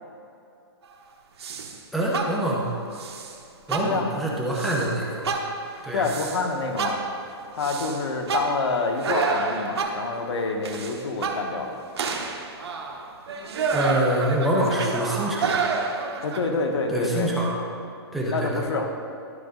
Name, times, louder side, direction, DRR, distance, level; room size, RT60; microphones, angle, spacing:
sound 1, 1.4-1.8 2.1-2.6 2.9-3.4 3.7-4.2 4.5-4.9 5.2-6.4 6.8-10.2 10.6-11.7 12.0-16.4, right 4 dB, 75° right, 1.1 m, -29 dB
voice 1, 1.9-2.7 3.7-5.4 5.8-6.1 13.7-15.6 16.9-17.5 18.1-18.6, right 1 dB, ahead, -4 dB, 0.7 m, -25 dB
voice 2, 5.9-7.0 7.5-11.8 16.2-17.3 18.3-18.9, left 3 dB, 85° left, 3 dB, 1.2 m, -27 dB
12.0 x 5.3 x 3.8 m, 2.6 s
hypercardioid pair, 170°, 14 cm